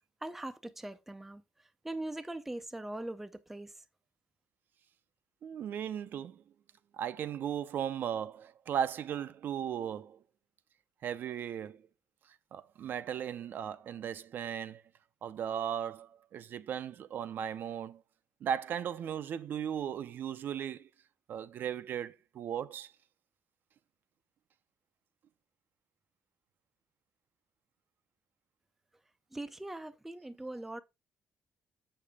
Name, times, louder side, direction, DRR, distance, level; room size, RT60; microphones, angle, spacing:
voice 1, 0.2-3.7 29.3-30.8, right 1 dB, 5° right, 0.5 m, -41 dB
voice 2, 5.4-6.4 6.9-10.2 11.0-11.8 12.5-14.8 15.2-18.0 18.4-20.9 21.3-22.9, right 9 dB, 50° right, 0.5 m, -37 dB
7.7 x 6.7 x 3.5 m
cardioid pair, 170°, 4 cm